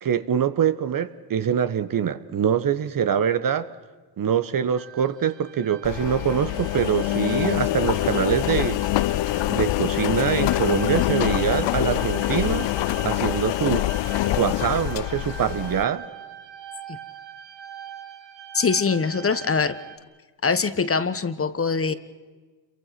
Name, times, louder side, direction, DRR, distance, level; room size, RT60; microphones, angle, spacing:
voice 1, 0.0-3.7 4.2-8.8 9.5-12.7 13.0-13.9 14.3-16.1, right 8 dB, 45° right, 13 dB, 1.2 m, -24 dB
sound 1, 4.7-20.0, right 8 dB, 60° right, 2.6 m, -42 dB
Engine, 5.8-15.8, left 16 dB, 60° left, 0.7 m, -25 dB
voice 2, 18.5-19.8 20.4-21.9, left 5 dB, 25° left, 13 dB, 1.2 m, -23 dB
27.5 x 23.5 x 5.9 m, 1.3 s
supercardioid pair, 80°, 49 cm